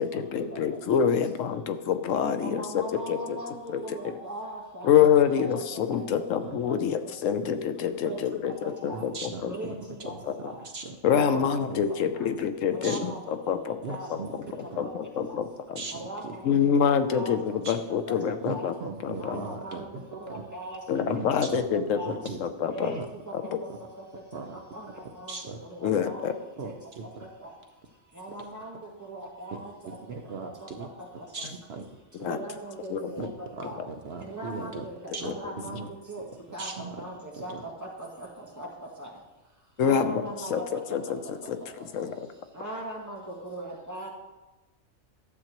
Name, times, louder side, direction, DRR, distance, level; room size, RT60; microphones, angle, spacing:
voice 1, 0.0-2.8 3.1-3.4 3.7-3.8 4.8-9.5 10.4-10.5 11.0-13.0 13.3-13.8 14.6-15.8 16.4-17.4 17.7-18.7 19.0-19.4 20.9-22.0 22.4-22.9 23.3-23.4 25.8-26.3 32.2-32.4 32.9-33.1 35.3-35.4 39.8-40.1 40.5-40.6 40.9-41.6 41.9-42.2, left 8 dB, 90° left, 9 dB, 1.0 m, -26 dB
voice 2, 2.3-5.6 5.9-6.2 7.0-7.1 8.0-8.2 8.4-9.0 9.4-9.8 10.0-10.1 10.4-10.6 11.1-11.8 12.1-12.2 12.7-14.3 15.3-15.4 15.9-16.4 16.8-18.2 18.5-18.7 19.2-21.2 21.5-21.6 21.9-22.2 22.7-23.0 23.4-23.5 24.0-24.1 24.5-25.4 25.6-26.7 27.0-27.1 27.4-27.5 28.1-30.2 30.4-30.5 30.8-30.9 31.2-31.5 32.2-33.8 34.2-34.9 35.2-36.2 36.5-39.1 39.8-40.7 42.0-42.1 42.5-44.1, right 1 dB, 15° right, -4 dB, 2.0 m, -40 dB
voice 3, 8.9-9.8 10.1-10.2 10.6-11.0 11.3-11.8 12.8-13.1 13.8-14.3 14.7-14.8 15.8-16.3 17.6-17.8 18.4-18.6 18.8-20.4 21.1-21.6 22.0-22.4 22.8-23.0 24.3-24.6 25.3-25.6 26.6-27.2 29.8-30.9 31.3-31.8 33.2-34.8 35.1-35.9 36.6-37.0 37.5-37.6, right 4 dB, 60° right, 4 dB, 0.9 m, -38 dB
12.0 x 7.6 x 3.0 m, 1.1 s
omnidirectional pair, 1.3 m